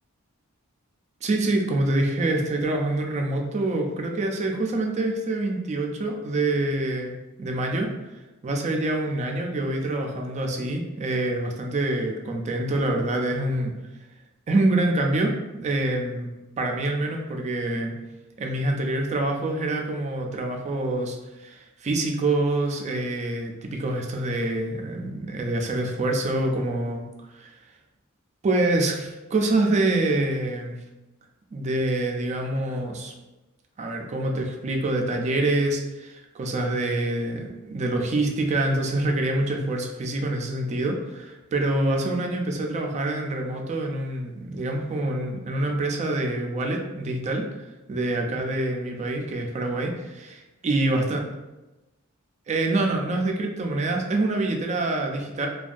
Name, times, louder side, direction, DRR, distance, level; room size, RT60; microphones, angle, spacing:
voice 1, 1.2-7.9 8.4-13.7 14.5-16.3 16.6-17.9 18.4-27.1 27.3-27.5 28.4-30.8 31.5-33.1 33.8-47.4 47.9-51.2 52.5-55.5, right 2 dB, 30° right, 2 dB, 0.3 m, -26 dB
2.6 x 2.2 x 2.4 m, 1.1 s
head